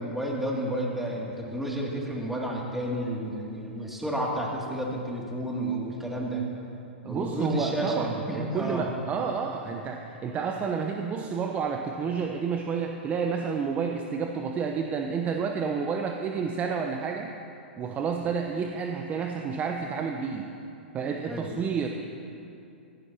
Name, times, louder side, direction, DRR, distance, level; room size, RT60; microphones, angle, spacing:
voice 1, 0.0-6.4 7.1-8.9 21.3-21.5, right 1 dB, 5° right, -3 dB, 2.5 m, -31 dB
voice 2, 7.0-17.3 17.8-20.5 20.9-21.9, right 6 dB, 25° right, 3 dB, 0.8 m, -30 dB
16.5 x 16.0 x 2.9 m, 2.6 s
hypercardioid pair, 110°, 6 cm